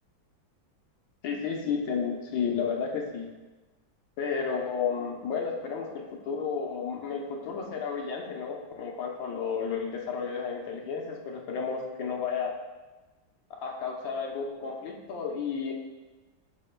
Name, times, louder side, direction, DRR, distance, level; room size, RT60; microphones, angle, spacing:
voice 1, 1.2-3.3 4.2-12.5 13.5-15.7, left 6 dB, 80° left, 0 dB, 1.7 m, -32 dB
8.9 x 6.4 x 2.3 m, 1.2 s
omnidirectional pair, 2.1 m